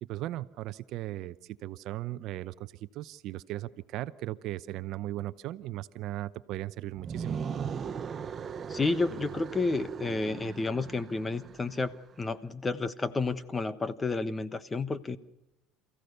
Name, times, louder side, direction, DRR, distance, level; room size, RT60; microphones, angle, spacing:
voice 1, 0.0-7.4, right 15 dB, 60° right, 15 dB, 0.8 m, -37 dB
sound 1, 6.9-12.0, right 6 dB, 30° right, 0.9 m, -38 dB
voice 2, 8.7-11.9 12.2-15.2, left 3 dB, 20° left, 15 dB, 1.2 m, -31 dB
28.5 x 15.5 x 6.8 m, 0.94 s
supercardioid pair, 110°, 0 cm